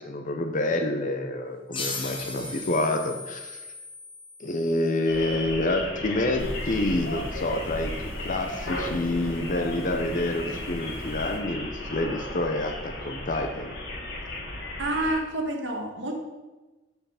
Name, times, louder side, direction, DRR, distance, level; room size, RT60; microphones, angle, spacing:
voice 1, 0.0-3.6 4.4-13.7, left 2 dB, 45° left, 5 dB, 0.7 m, -28 dB
sound 1, 1.7-5.0, left 3 dB, 25° left, 1.1 m, -37 dB
sound 2, 5.1-15.1, left 1 dB, 65° left, 2.0 m, -35 dB
sound 3, 6.4-11.4, equal, 15° right, 1.3 m, -38 dB
voice 2, 14.8-16.1, right 1 dB, 75° right, 2 dB, 1.4 m, -28 dB
6.6 x 5.7 x 5.7 m, 1.2 s
head